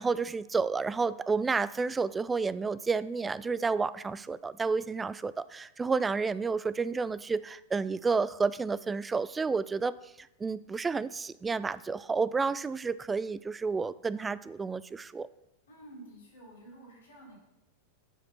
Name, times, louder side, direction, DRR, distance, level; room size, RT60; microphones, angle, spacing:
voice 1, 0.0-15.3, right 4 dB, 15° right, 17 dB, 0.3 m, -30 dB
voice 2, 15.7-17.4, right 1 dB, 65° left, -3 dB, 3.4 m, -50 dB
10.5 x 5.0 x 5.8 m, 0.91 s
figure-of-eight pair, 90°, 0 cm